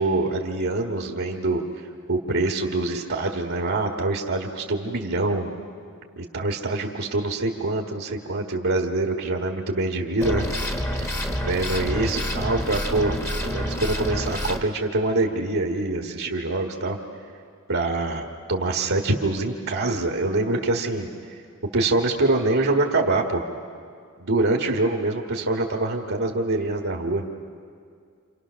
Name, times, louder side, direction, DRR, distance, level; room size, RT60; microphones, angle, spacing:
voice 1, 0.0-1.6 2.1-5.5 6.2-10.5 11.0-11.1 11.4-17.0 17.7-21.4 21.7-23.4 24.2-27.2, right 2 dB, 60° right, 1 dB, 1.6 m, -25 dB
sound 1, 10.2-14.6, equal, 15° left, 1.5 m, -28 dB
28.5 x 27.5 x 6.3 m, 2.2 s
head